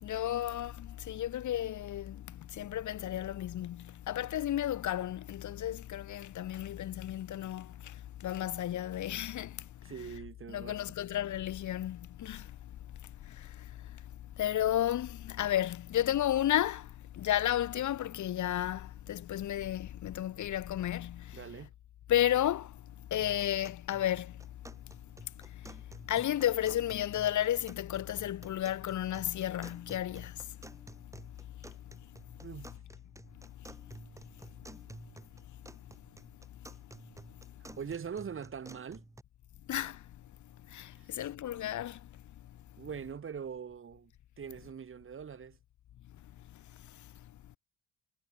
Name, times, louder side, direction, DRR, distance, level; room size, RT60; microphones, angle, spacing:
voice 1, 0.0-9.9 10.5-12.6 13.0-14.0 14.4-21.4 22.1-22.8 23.1-24.4 25.5-25.7 26.0-30.6 39.7-40.0 40.7-42.1 47.0-47.1, left 12 dB, 50° left, 1.3 m, -33 dB
voice 2, 9.8-10.8 21.3-21.7 32.4-32.7 37.6-39.1 41.0-41.4 42.8-44.1 44.4-45.6, right 7 dB, 30° right, 3.9 m, -42 dB
sound 1, 23.2-39.2, right 2 dB, 10° right, 3.4 m, -53 dB
cardioid pair, 165°, 39 cm